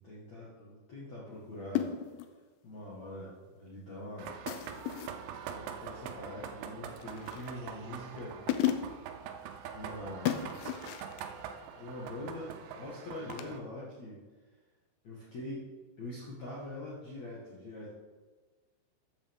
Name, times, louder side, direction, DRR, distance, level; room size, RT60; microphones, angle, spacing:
voice 1, 0.0-2.0 2.6-4.4 5.5-8.4 9.7-10.6 11.7-14.2 15.0-15.7 16.0-17.9, left 1 dB, 60° left, -6 dB, 1.8 m, -43 dB
sound 1, 1.8-2.4 4.5-5.2 7.0-7.6 8.2-8.3 8.5-9.1 10.3-11.3 13.3-13.5, left 11 dB, 90° left, 3.4 m, -34 dB
sound 2, 4.2-13.6, right 8 dB, 85° right, 2.5 m, -44 dB
13.5 x 8.7 x 3.6 m, 1.3 s
omnidirectional pair, 5.9 m